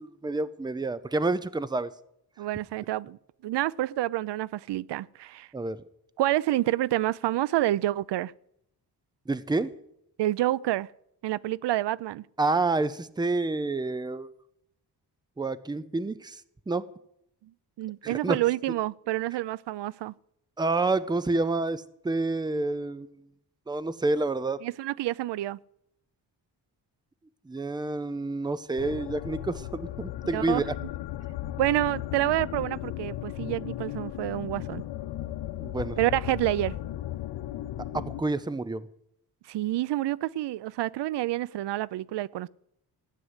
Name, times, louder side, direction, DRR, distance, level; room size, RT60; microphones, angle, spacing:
voice 1, 0.0-1.9 5.5-5.8 9.3-9.7 12.4-14.3 15.4-16.4 16.7-16.9 18.0-18.4 20.6-23.2 23.7-24.6 27.5-30.6 35.6-36.0 37.9-38.9, right 3 dB, 10° right, 0.6 m, -28 dB
voice 2, 2.4-3.2 3.4-5.5 6.2-8.3 10.2-10.9 11.2-12.2 17.8-20.1 24.6-25.6 30.3-30.6 31.6-34.8 36.0-36.7 39.5-42.5, right 15 dB, 90° right, 0.5 m, -28 dB
sound 1, 28.8-38.2, left 13 dB, 80° left, 0.7 m, -36 dB
16.0 x 9.3 x 8.1 m
wide cardioid pair, 150°, 41 cm